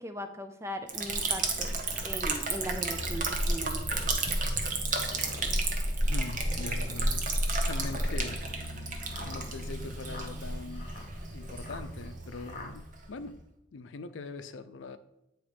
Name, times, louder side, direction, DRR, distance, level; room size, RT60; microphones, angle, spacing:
voice 1, 0.0-1.7 2.0-4.4, right 1 dB, 15° right, 0.6 m, -39 dB
Liquid, 0.9-13.3, right 2 dB, 45° right, 0.9 m, -31 dB
sound 1, 2.5-3.2 3.8-3.9 4.9-5.6 6.3-7.1 7.7-12.7, left 2 dB, 40° left, 1.3 m, -47 dB
voice 2, 6.1-8.4 9.2-10.9 11.3-13.4 13.7-15.0, left 3 dB, 90° left, 0.5 m, -42 dB
8.6 x 3.1 x 5.0 m
head